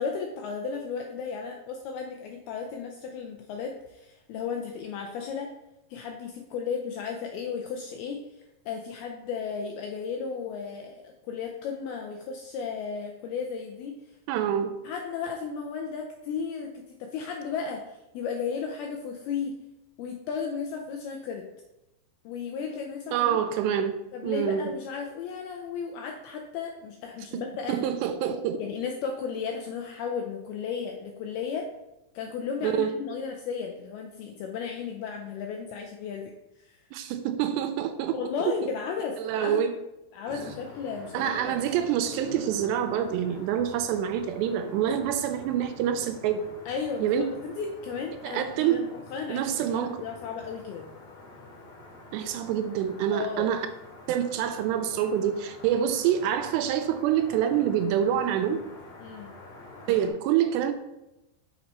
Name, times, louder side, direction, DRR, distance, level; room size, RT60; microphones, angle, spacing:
voice 1, 0.0-5.5 5.9-8.2 8.7-14.0 14.8-19.6 20.0-21.5 22.3-23.4 24.1-27.8 28.6-31.7 32.2-36.3 36.6-36.8 38.1-39.7 40.1-41.6 46.7-50.9 53.1-53.5 59.0-59.3, left 6 dB, 80° left, 2 dB, 2.2 m, -34 dB
voice 2, 14.3-14.7 23.1-24.0 24.2-24.7 27.7-28.6 32.6-32.9 36.9-38.2 39.2-39.7 41.1-46.4 47.0-47.2 48.2-48.8 49.3-50.0 52.1-53.7 54.1-58.6 59.9-60.7, right 9 dB, 85° right, 8 dB, 2.7 m, -26 dB
sound 1, 40.2-60.1, left 2 dB, 55° left, 3.0 m, -46 dB
6.8 x 5.8 x 4.3 m, 0.94 s
omnidirectional pair, 5.1 m